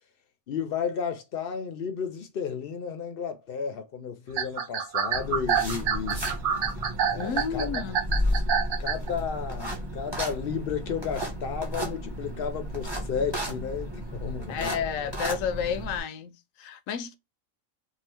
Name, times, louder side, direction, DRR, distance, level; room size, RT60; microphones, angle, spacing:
voice 1, 0.5-6.3 7.1-7.7 8.8-14.7, left 7 dB, 55° left, 0.7 m, -33 dB
sound 1, 4.3-9.1, right 7 dB, 65° right, 0.5 m, -27 dB
sound 2, 5.1-16.0, equal, 20° right, 1.2 m, -33 dB
voice 2, 7.1-8.4 14.5-17.2, left 7 dB, 80° left, 0.9 m, -32 dB
2.7 x 2.5 x 3.3 m
omnidirectional pair, 1.4 m